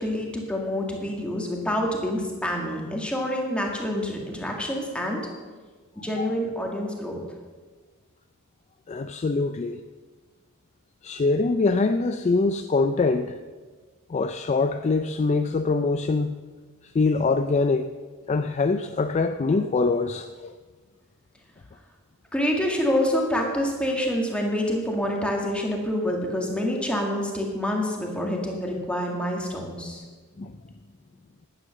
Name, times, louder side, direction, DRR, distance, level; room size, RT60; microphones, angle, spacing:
voice 1, 0.0-5.2 6.0-7.2 22.3-30.0, left 1 dB, 5° left, 1.9 m, -27 dB
voice 2, 8.9-9.8 11.0-13.4 14.1-16.4 16.9-17.9 18.3-20.5 30.4-30.5, left 3 dB, 30° left, 0.3 m, -24 dB
11.0 x 9.4 x 6.5 m
head